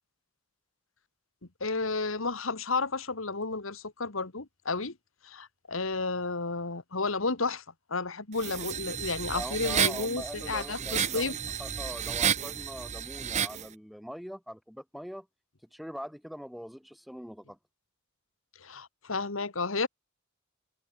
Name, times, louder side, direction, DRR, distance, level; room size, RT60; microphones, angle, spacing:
voice 1, 1.6-5.0 5.2-7.6 7.9-11.3 18.6-19.9, left 3 dB, 75° left, 2.0 m, -32 dB
sound 1, 8.4-13.7, right 8 dB, 35° right, 0.6 m, -31 dB
voice 2, 9.3-15.3 15.7-17.6, equal, ahead, 1.1 m, -42 dB
head